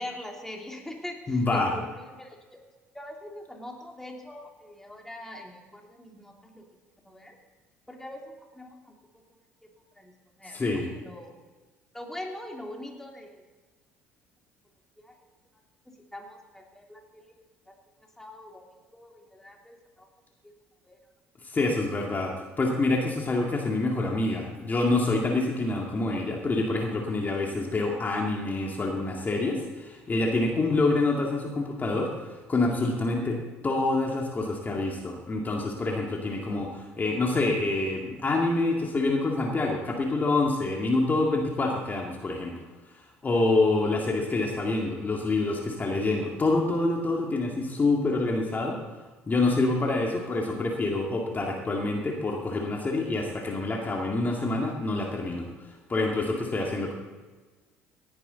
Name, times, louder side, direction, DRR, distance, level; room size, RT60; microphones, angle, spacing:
voice 1, 0.0-2.6 2.9-6.7 7.0-7.4 7.9-8.9 9.6-9.7 10.0-11.3 11.9-13.5 15.0-15.1 15.9-17.2 17.7-17.8 18.2-20.1 20.8-21.0, left 1 dB, 5° left, 1 dB, 2.7 m, -43 dB
voice 2, 1.3-1.7 10.4-10.9 21.4-33.4 33.6-42.5 43.2-48.8 49.3-56.9, left 2 dB, 30° left, 0 dB, 2.3 m, -27 dB
18.0 x 9.8 x 4.0 m, 1.3 s
hypercardioid pair, 60°, 6 cm